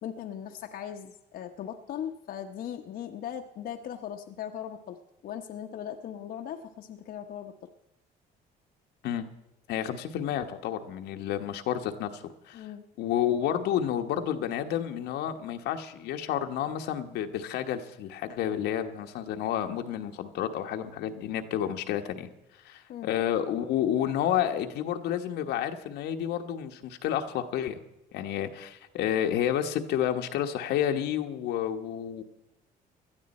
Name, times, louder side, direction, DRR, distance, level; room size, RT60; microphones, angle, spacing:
voice 1, 0.0-5.0 5.2-7.7 12.5-12.9 22.9-23.1, left 9 dB, 65° left, 4 dB, 1.0 m, -39 dB
voice 2, 9.7-12.7 13.0-22.3 22.6-27.8 28.1-32.2, left 10 dB, 80° left, 5 dB, 1.2 m, -30 dB
17.5 x 12.5 x 4.3 m, 0.90 s
cardioid pair, 110°, 17 cm